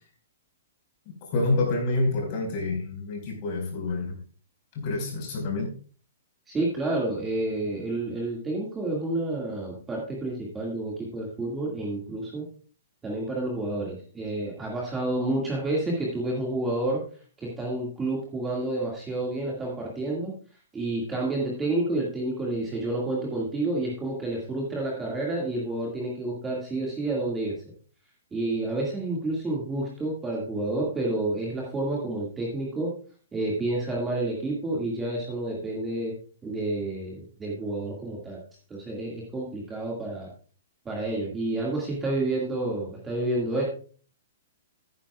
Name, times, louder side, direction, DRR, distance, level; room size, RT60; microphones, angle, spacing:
voice 1, 1.3-4.2 4.7-5.7, left 2 dB, 30° left, 1 dB, 5.0 m, -27 dB
voice 2, 6.5-12.5 13.0-17.0 17.4-20.3 20.7-27.5 28.3-32.9 33.3-36.1 36.4-38.4 38.7-40.3 40.9-43.6, right 2 dB, 10° right, -3 dB, 2.0 m, -29 dB
16.0 x 9.6 x 2.4 m, 0.40 s
hypercardioid pair, 170°, 0 cm